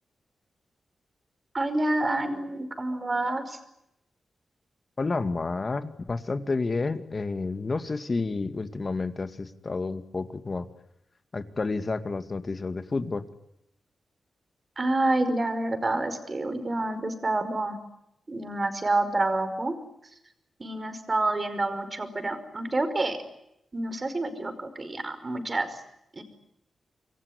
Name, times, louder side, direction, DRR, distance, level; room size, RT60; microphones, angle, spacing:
voice 1, 1.5-3.6 14.8-17.8 18.3-19.7 20.6-23.2 23.7-25.7 26.2-26.3, right 2 dB, 30° right, 9 dB, 5.3 m, -28 dB
voice 2, 5.0-10.7 11.3-13.2, left 3 dB, 35° left, 9 dB, 2.3 m, -30 dB
27.0 x 23.0 x 9.6 m, 0.81 s
wide cardioid pair, 100°, 0 cm